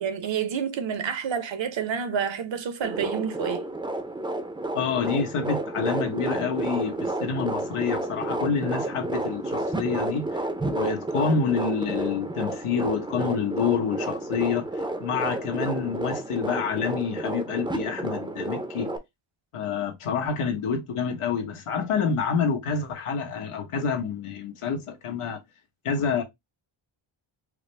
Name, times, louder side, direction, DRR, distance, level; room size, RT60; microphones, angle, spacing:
voice 1, 0.0-3.7, right 7 dB, 65° right, 0.8 m, -29 dB
sound 1, 2.8-19.0, right 2 dB, 10° right, 0.4 m, -31 dB
voice 2, 4.7-18.9 19.5-25.4 25.8-26.2, left 6 dB, 85° left, 1.1 m, -28 dB
4.8 x 2.0 x 3.2 m
wide cardioid pair, 140°, 50 cm